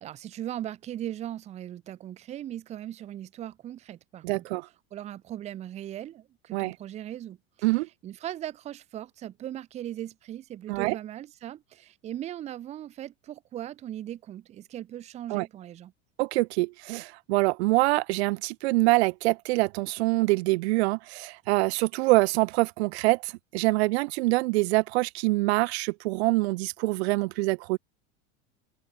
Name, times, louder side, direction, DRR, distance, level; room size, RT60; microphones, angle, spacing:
voice 1, 0.0-4.4 4.9-7.7 8.0-15.9, right 12 dB, 20° right, 0.7 m, -39 dB
voice 2, 4.2-4.7 6.5-6.7 7.6-7.9 10.7-11.0 15.3-15.5 16.2-27.8, right 23 dB, 75° right, 0.8 m, -25 dB
open air
cardioid pair, 170°, 32 cm